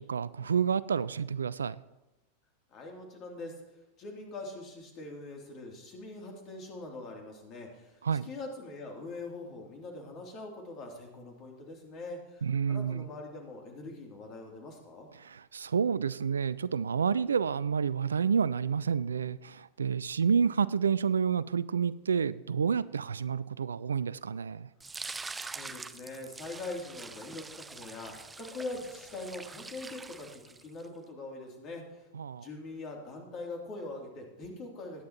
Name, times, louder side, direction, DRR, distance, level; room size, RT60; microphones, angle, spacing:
voice 1, 0.0-1.8 8.0-8.3 12.4-13.1 15.2-24.7 32.1-32.5, right 6 dB, 70° right, 18 dB, 0.3 m, -29 dB
voice 2, 2.7-15.1 25.4-32.1 32.4-35.0, left 2 dB, 35° left, 1 dB, 3.0 m, -43 dB
sound 1, 24.8-30.9, right 3 dB, 10° right, 0.6 m, -44 dB
20.5 x 9.4 x 3.0 m, 1.0 s
figure-of-eight pair, 90°, 0 cm